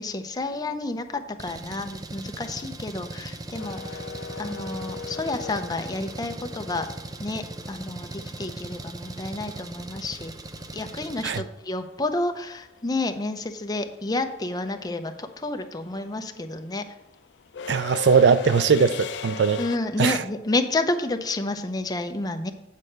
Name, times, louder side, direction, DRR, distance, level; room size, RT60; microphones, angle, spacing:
voice 1, 0.0-4.0 4.4-6.9 7.2-10.3 10.7-16.9 19.6-22.5, left 2 dB, 20° left, 0.6 m, -30 dB
Engine, 1.4-11.4, right 2 dB, 20° right, 0.5 m, -39 dB
sound 1, 3.5-7.6 10.0-10.1 11.4-11.7 12.0-19.8, left 5 dB, 80° left, 0.4 m, -38 dB
voice 2, 17.7-19.6 20.0-20.2, right 5 dB, 80° right, 0.4 m, -20 dB
8.3 x 4.4 x 6.5 m
head